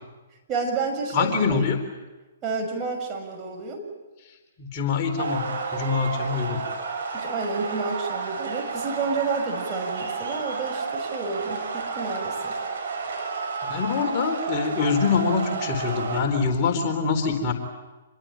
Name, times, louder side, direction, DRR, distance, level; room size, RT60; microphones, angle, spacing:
voice 1, 0.5-1.6 2.4-3.8 7.1-12.5, right 4 dB, 25° right, 1 dB, 6.4 m, -30 dB
voice 2, 1.1-1.8 4.6-6.6 13.6-17.5, left 5 dB, 35° left, 3 dB, 4.0 m, -25 dB
sound 1, 5.2-16.2, right 4 dB, 65° right, 6.6 m, -31 dB
28.0 x 22.0 x 9.0 m, 1.2 s
figure-of-eight pair, 125°, 0 cm